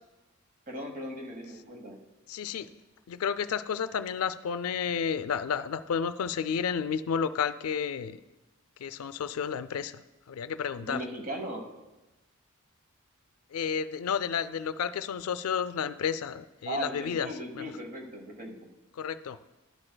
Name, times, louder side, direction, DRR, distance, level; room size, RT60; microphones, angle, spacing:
voice 1, 0.7-2.0 10.8-11.7 16.7-18.6, right 1 dB, 40° right, 3 dB, 1.1 m, -37 dB
voice 2, 2.3-2.7 3.1-8.2 8.8-10.0 10.3-11.0 13.5-17.3 17.5-17.7 19.0-19.4, left 7 dB, 85° left, 13 dB, 0.4 m, -31 dB
11.5 x 9.8 x 2.2 m, 1.1 s
head